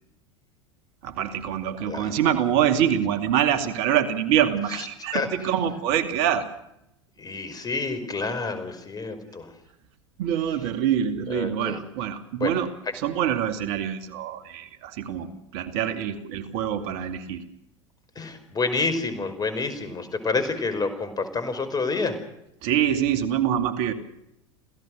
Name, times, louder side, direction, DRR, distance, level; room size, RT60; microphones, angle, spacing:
voice 1, 1.0-6.5 10.2-12.7 12.9-17.4 22.6-23.9, right 10 dB, 60° right, 9 dB, 2.4 m, -25 dB
voice 2, 1.8-2.3 5.1-5.3 7.2-9.5 11.3-11.8 12.4-12.6 15.2-15.3 18.2-22.2, left 4 dB, 25° left, 10 dB, 5.2 m, -28 dB
28.5 x 16.5 x 6.5 m, 0.82 s
hypercardioid pair, 85°, 15 cm